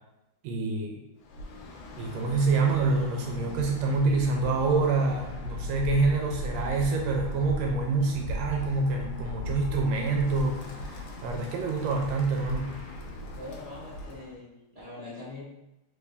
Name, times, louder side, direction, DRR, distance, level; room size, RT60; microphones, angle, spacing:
voice 1, 0.4-1.0 2.0-12.7, right 3 dB, 80° right, 1 dB, 1.6 m, -27 dB
Bird, 1.2-14.3, left 1 dB, 85° left, 1.3 m, -38 dB
voice 2, 13.3-15.4, left 2 dB, 35° right, -10 dB, 0.5 m, -42 dB
4.2 x 3.4 x 3.4 m, 0.93 s
omnidirectional pair, 3.4 m